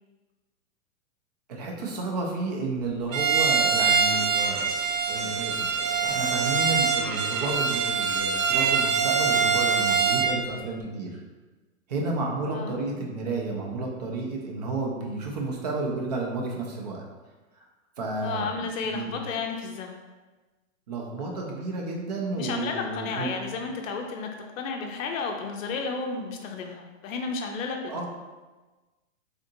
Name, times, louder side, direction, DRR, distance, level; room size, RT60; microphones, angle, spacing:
voice 1, 1.5-4.6 5.1-11.2 11.9-17.0 17.5-17.6 18.0-19.2 20.9-23.3 27.9-28.1, right 3 dB, 35° right, 0 dB, 0.4 m, -31 dB
Bowed string instrument, 3.1-10.4, right 5 dB, 80° right, 0.5 m, -24 dB
voice 2, 18.2-20.0 22.3-24.3 24.6-28.1, left 4 dB, 75° left, 2 dB, 0.6 m, -32 dB
3.8 x 2.5 x 2.6 m, 1.2 s
hypercardioid pair, 155°, 40 cm